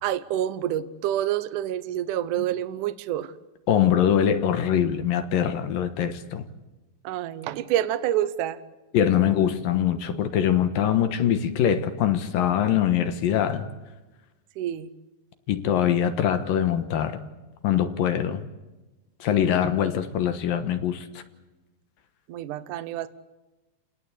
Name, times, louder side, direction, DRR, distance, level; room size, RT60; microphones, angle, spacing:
voice 1, 0.0-3.3 7.0-8.6 14.6-14.9 22.3-23.1, right 12 dB, 75° right, 1.8 m, -27 dB
voice 2, 3.7-6.5 8.9-13.7 15.5-17.2 17.6-18.4 19.2-21.2, left 9 dB, 65° left, 2.6 m, -23 dB
29.5 x 19.0 x 8.4 m
omnidirectional pair, 4.9 m